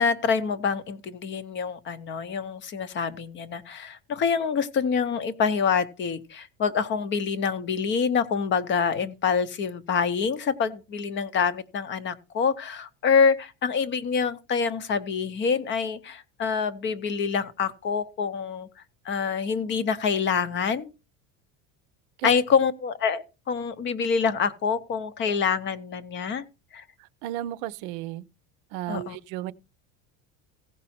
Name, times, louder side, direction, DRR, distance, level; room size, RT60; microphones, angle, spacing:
voice 1, 0.0-18.7 19.1-20.9 22.2-26.4 26.7-26.8 28.9-29.2, left 6 dB, 30° left, 0.6 m, -26 dB
voice 2, 27.2-28.2 28.7-29.5, right 14 dB, 70° right, 0.7 m, -33 dB
16.0 x 5.4 x 4.2 m
cardioid pair, 165°, 39 cm